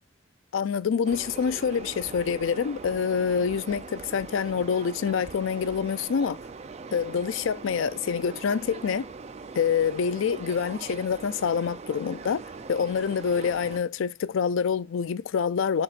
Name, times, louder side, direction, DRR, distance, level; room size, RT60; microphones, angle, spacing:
voice 1, 0.5-6.4 6.9-9.1 9.6-12.4 12.7-15.8, left 6 dB, 70° left, 0.4 m, -26 dB
sound 1, 1.0-13.8, right 4 dB, 35° right, 0.4 m, -41 dB
9.8 x 4.1 x 2.5 m
head